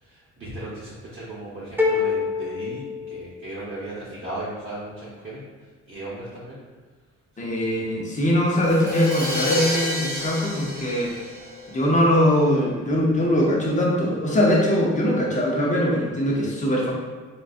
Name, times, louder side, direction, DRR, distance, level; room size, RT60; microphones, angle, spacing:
voice 1, 0.0-5.4 5.9-6.6, right 1 dB, 35° right, -9 dB, 1.0 m, -36 dB
sound 1, 1.8-3.8, left 5 dB, 5° right, 0.4 m, -26 dB
voice 2, 7.4-11.2 11.7-16.9, left 1 dB, 25° left, -3 dB, 0.8 m, -21 dB
Crash cymbal, 8.5-12.3, left 1 dB, 45° left, 1.3 m, -29 dB
3.8 x 2.3 x 2.5 m, 1.4 s
cardioid pair, 90°, 30 cm